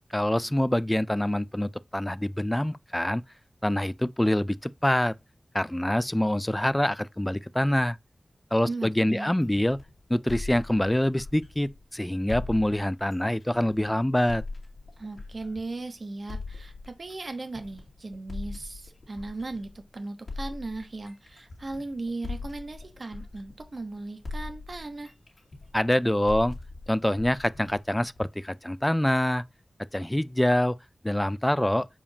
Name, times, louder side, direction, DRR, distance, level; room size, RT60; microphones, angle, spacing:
voice 1, 0.1-3.2 3.6-5.1 5.5-8.0 8.5-9.8 10.1-14.4 25.7-26.6 26.9-29.4 29.9-30.8 31.0-31.9, left 1 dB, 10° left, 0.3 m, -25 dB
voice 2, 8.6-9.3 15.0-25.1, right 2 dB, 55° right, 1.0 m, -37 dB
sound 1, 9.4-11.8 12.3-15.8 16.3-19.8 20.3-23.9 24.2-28.3, left 3 dB, 65° left, 2.4 m, -40 dB
7.0 x 4.9 x 2.7 m
wide cardioid pair, 75°, 0 cm